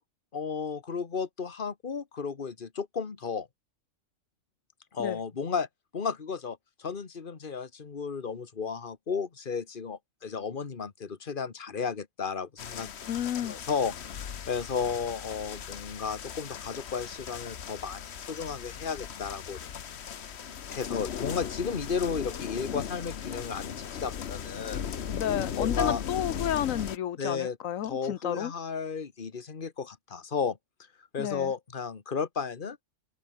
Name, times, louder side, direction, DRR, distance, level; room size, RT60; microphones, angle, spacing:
voice 1, 0.3-3.5 4.9-5.7 5.9-12.9 13.4-19.6 20.4-24.8 25.6-26.0 27.2-27.6 27.8-30.6 31.1-32.8, left 5 dB, 40° left, 1.6 m, -34 dB
sound 1, 12.6-27.0, left 8 dB, 55° left, 1.2 m, -37 dB
voice 2, 13.1-13.5 25.1-28.5 31.2-31.5, left 10 dB, 90° left, 1.2 m, -31 dB
open air
omnidirectional pair, 1.3 m